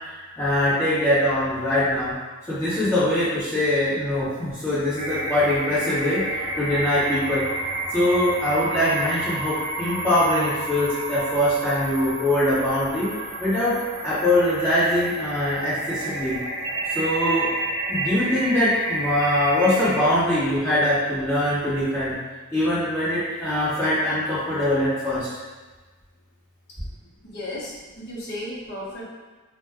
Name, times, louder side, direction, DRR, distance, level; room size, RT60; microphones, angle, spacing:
voice 1, 0.0-2.1 2.5-7.4 7.9-13.1 13.4-13.7 14.0-16.4 16.9-17.5 17.9-22.1 22.5-25.3, left 1 dB, 10° left, -12 dB, 1.3 m, -22 dB
sound 1, 5.0-20.0, right 2 dB, 55° right, 0.7 m, -30 dB
voice 2, 27.2-29.0, left 1 dB, 50° left, -5 dB, 0.8 m, -34 dB
2.6 x 2.2 x 3.5 m, 1.3 s
head